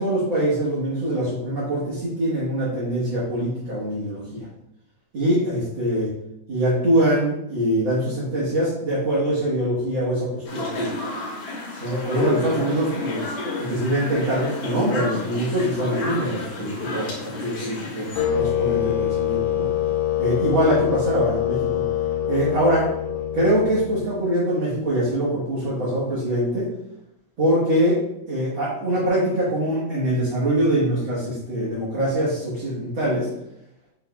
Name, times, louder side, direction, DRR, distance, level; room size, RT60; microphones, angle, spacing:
voice 1, 0.0-4.5 5.1-6.1 6.5-10.9 11.8-13.3 13.6-18.1 18.4-19.7 20.2-21.8 22.3-22.9 23.3-26.7 27.4-28.0 28.3-33.3, right 1 dB, 50° right, -10 dB, 1.7 m, -23 dB
sound 1, 10.5-18.2, left 2 dB, 60° left, 2.4 m, -30 dB
sound 2, 18.2-24.2, left 11 dB, 80° left, 2.1 m, -24 dB
6.4 x 3.5 x 2.3 m, 0.83 s
omnidirectional pair, 3.4 m